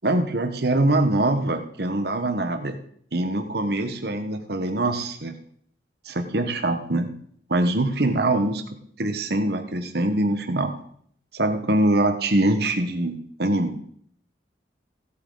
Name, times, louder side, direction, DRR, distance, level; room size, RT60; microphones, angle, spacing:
voice 1, 0.0-2.8 3.1-5.3 6.0-7.1 7.5-8.6 9.0-10.7 11.3-13.8, right 2 dB, 55° right, 6 dB, 1.2 m, -23 dB
16.5 x 8.5 x 4.0 m, 0.63 s
head